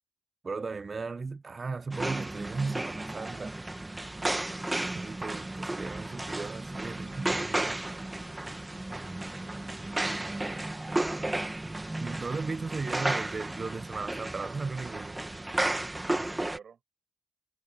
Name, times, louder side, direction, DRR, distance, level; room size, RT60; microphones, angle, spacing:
voice 1, 0.4-3.6 4.9-7.8 12.0-15.2, right 4 dB, 30° right, 0.9 m, -36 dB
sound 1, 1.9-16.6, right 2 dB, 15° right, 1.6 m, -33 dB
voice 2, 6.9-7.2 9.4-10.7 16.2-16.8, right 6 dB, 50° right, 7.7 m, -54 dB
cardioid pair, 90°, 0 cm